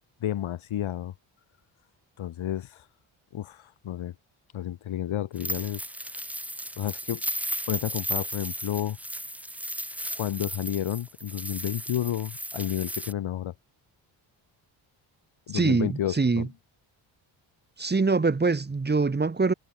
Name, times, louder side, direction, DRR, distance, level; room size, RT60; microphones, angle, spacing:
voice 1, 0.2-1.1 2.2-2.9 3.3-4.1 4.5-5.8 6.8-7.2 7.7-9.0 10.1-13.5 15.5-16.5, left 11 dB, 75° left, 3.4 m, -31 dB
sound 1, 5.4-13.1, right 1 dB, 5° right, 1.5 m, -35 dB
voice 2, 15.5-16.5 17.8-19.5, right 4 dB, 20° right, 1.3 m, -24 dB
supercardioid pair, 60°, 48 cm